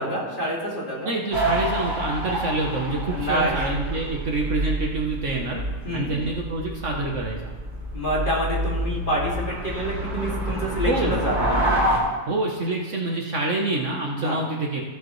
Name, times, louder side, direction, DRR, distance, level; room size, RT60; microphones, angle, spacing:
voice 1, 0.0-1.1 3.1-3.5 5.8-6.1 7.9-11.6 14.2-14.4, equal, 30° left, -5 dB, 2.5 m, -27 dB
voice 2, 1.0-5.6 5.9-7.4 10.8-11.2 12.3-14.8, right 2 dB, 55° right, -1 dB, 1.2 m, -26 dB
sound 1, 1.3-12.0, right 1 dB, 70° right, 2.9 m, -27 dB
16.0 x 7.1 x 3.1 m, 1.4 s
omnidirectional pair, 1.7 m